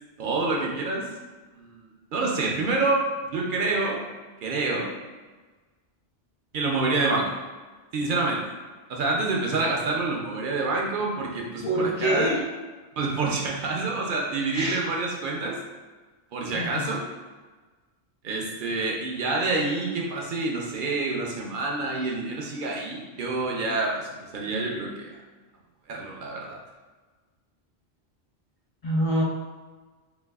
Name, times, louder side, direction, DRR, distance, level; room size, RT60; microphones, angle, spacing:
voice 1, 0.2-1.1 1.6-1.8 2.1-3.0 3.2-4.0 4.4-4.9 6.5-7.3 7.9-8.4 8.9-12.3 13.0-15.6 16.3-17.0 18.2-25.2 25.9-26.6, right 3 dB, 60° right, -1 dB, 0.6 m, -27 dB
voice 2, 11.6-12.4 14.5-14.8 16.5-16.9 28.8-29.2, right 1 dB, 60° left, -5 dB, 0.3 m, -25 dB
3.9 x 2.3 x 2.3 m, 1.3 s
omnidirectional pair, 1.2 m